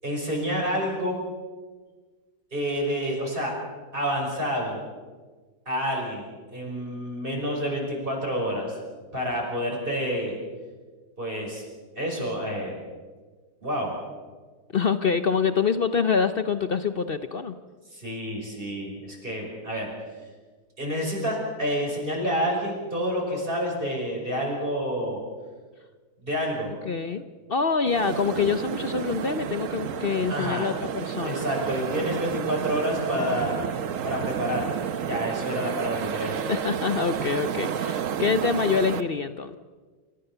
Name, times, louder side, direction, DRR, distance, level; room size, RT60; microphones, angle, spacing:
voice 1, 0.0-1.2 2.5-3.5 3.9-4.8 5.7-6.2 6.5-8.8 9.1-10.4 11.2-11.6 12.0-12.7 13.6-13.9 17.9-19.9 20.8-25.2 26.2-26.7 30.3-30.7 31.2-33.6 34.0-34.6 35.0-36.6, equal, 30° right, -1 dB, 5.9 m, -28 dB
voice 2, 14.7-17.5 26.8-27.2 27.5-31.5 36.5-39.6, left 6 dB, 50° left, 11 dB, 0.7 m, -25 dB
sound 1, 27.9-39.0, right 8 dB, 60° right, 1.1 m, -31 dB
29.0 x 15.0 x 6.9 m, 1.4 s
omnidirectional pair, 1.7 m